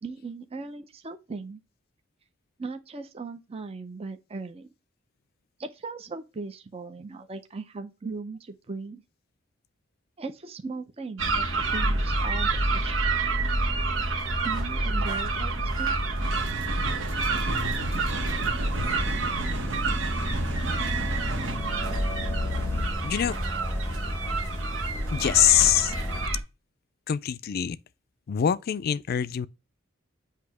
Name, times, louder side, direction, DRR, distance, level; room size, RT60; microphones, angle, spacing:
voice 1, 0.0-1.6 2.6-4.7 5.6-9.0 10.2-13.1 14.4-15.5 15.8-16.0 17.3-17.6, right 4 dB, 30° right, 0.5 m, -38 dB
sound 1, 11.2-26.4, right 2 dB, 90° right, 1.2 m, -28 dB
sound 2, 16.2-21.6, right 3 dB, 70° right, 1.0 m, -34 dB
sound 3, 17.2-26.3, left 1 dB, 10° left, 0.7 m, -40 dB
voice 2, 23.0-23.4 25.1-25.9 27.1-27.8 28.3-29.5, left 10 dB, 50° left, 0.4 m, -23 dB
8.2 x 2.8 x 4.7 m
head